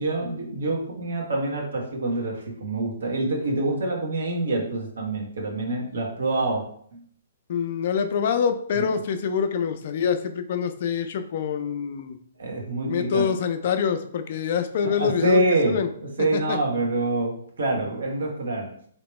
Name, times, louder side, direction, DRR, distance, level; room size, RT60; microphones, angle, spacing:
voice 1, 0.0-6.6 6.9-7.0 8.7-8.9 12.4-13.2 14.8-18.7, right 2 dB, 75° right, 0 dB, 1.1 m, -26 dB
voice 2, 7.5-12.2 12.9-15.4 15.7-15.9 16.2-16.6, left 7 dB, 55° left, 9 dB, 0.4 m, -25 dB
3.4 x 2.9 x 3.1 m, 0.62 s
hypercardioid pair, 140°, 0 cm